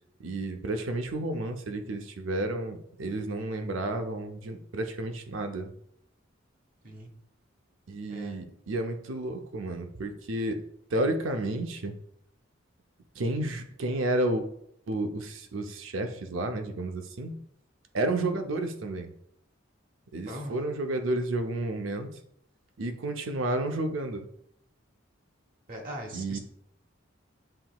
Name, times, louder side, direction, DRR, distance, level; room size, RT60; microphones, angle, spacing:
voice 1, 0.2-5.7 7.9-10.6 10.9-11.9 13.2-14.4 14.9-17.3 17.9-19.1 20.1-22.1 22.8-24.2 26.1-26.4, right 2 dB, 75° right, 5 dB, 0.6 m, -31 dB
voice 2, 20.3-20.7 25.7-26.4, right 1 dB, 45° right, 1 dB, 0.8 m, -39 dB
7.6 x 2.9 x 2.3 m, 0.71 s
head